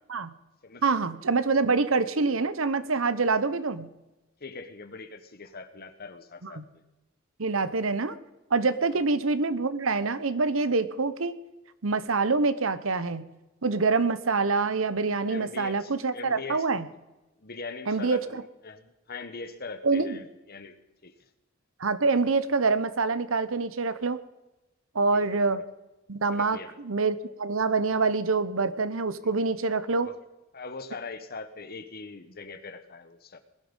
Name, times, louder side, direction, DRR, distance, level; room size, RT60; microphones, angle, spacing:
voice 1, 0.8-3.9 6.4-6.6 7.4-8.2 8.5-11.3 11.8-13.2 13.6-16.8 17.9-18.4 19.8-20.2 21.8-24.2 24.9-25.6 26.1-30.1, right 4 dB, 75° right, 13 dB, 1.0 m, -26 dB
voice 2, 4.4-6.6 8.9-9.0 15.3-16.7 17.4-20.8 21.0-21.1 25.1-25.6 26.3-26.7 28.6-28.7 29.2-29.3 30.0-30.2 30.5-33.4, left 4 dB, 50° left, 9 dB, 1.4 m, -42 dB
20.5 x 11.5 x 5.5 m, 1.0 s
head